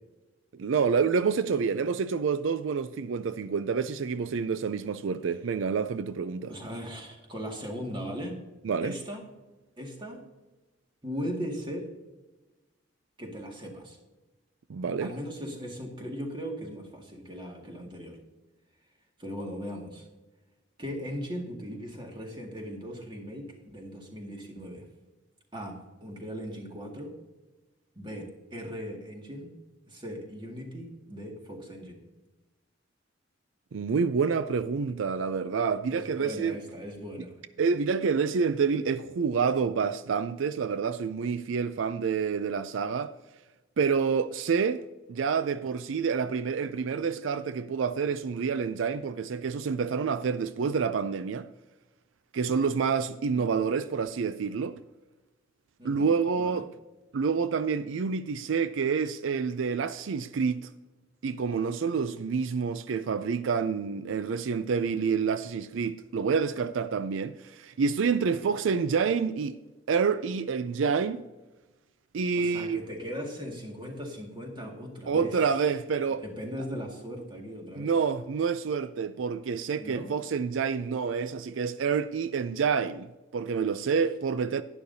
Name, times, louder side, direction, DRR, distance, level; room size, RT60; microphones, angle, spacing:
voice 1, 0.5-6.5 8.6-9.0 14.7-15.1 33.7-36.6 37.6-43.1 43.8-44.8 45.1-51.5 52.3-54.8 55.8-56.7 57.1-60.7 61.2-69.6 69.9-71.2 72.1-72.8 75.1-76.2 77.8-84.6, right 5 dB, 85° right, 0.4 m, -28 dB
voice 2, 6.5-8.4 8.8-9.2 9.8-10.2 11.0-11.9 13.2-14.0 15.0-18.2 19.2-20.1 20.8-24.9 25.5-27.2 28.0-29.5 29.9-32.0 35.9-37.3 53.3-53.5 55.8-56.7 68.2-69.0 72.3-75.7 76.2-77.9 79.8-80.1, equal, 25° right, 2.0 m, -39 dB
11.5 x 10.5 x 2.7 m
head